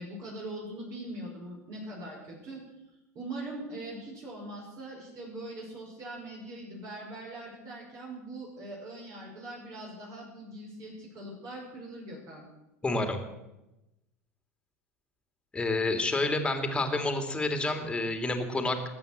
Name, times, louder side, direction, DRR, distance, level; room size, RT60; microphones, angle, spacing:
voice 1, 0.0-2.6 3.1-12.4, right 1 dB, 40° right, -3 dB, 5.5 m, -41 dB
voice 2, 12.8-13.2 15.5-18.9, left 2 dB, 10° left, 6 dB, 2.7 m, -29 dB
20.0 x 8.7 x 7.7 m, 0.96 s
figure-of-eight pair, 80°, 8 cm